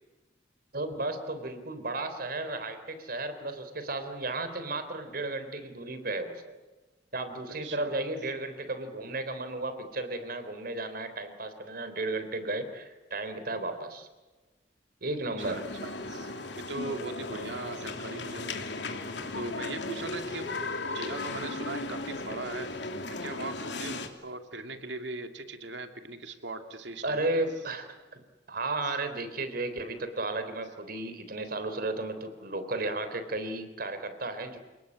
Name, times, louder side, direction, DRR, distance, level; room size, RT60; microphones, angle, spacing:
voice 1, 0.7-6.6 7.1-14.1 15.0-15.6 27.0-28.2 28.5-34.6, right 2 dB, 55° right, 9 dB, 3.7 m, -34 dB
voice 2, 7.5-8.0 15.5-18.6 19.3-20.5 20.9-22.8 23.2-27.2, right 2 dB, 85° right, 6 dB, 2.5 m, -39 dB
sound 1, 15.4-24.1, left 2 dB, 75° left, 2.9 m, -36 dB
28.5 x 19.5 x 8.6 m, 1.2 s
head